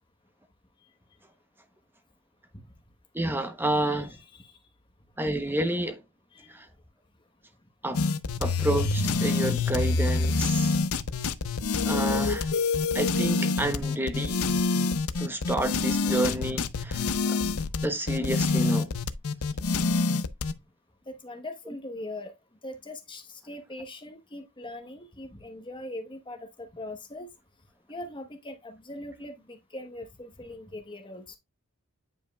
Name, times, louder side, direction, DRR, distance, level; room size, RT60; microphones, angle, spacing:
voice 1, 3.1-4.2 5.2-6.0 6.5-6.7 7.8-8.0 8.4-10.8 11.8-12.5 12.9-14.4 15.2-17.4 17.8-18.9, right 1 dB, 10° right, 0.7 m, -29 dB
sound 1, 7.9-20.5, left 3 dB, 75° left, 0.6 m, -26 dB
voice 2, 21.1-22.3 22.6-27.3 27.9-31.2, left 1 dB, 20° left, 1.0 m, -41 dB
9.1 x 5.2 x 2.2 m
head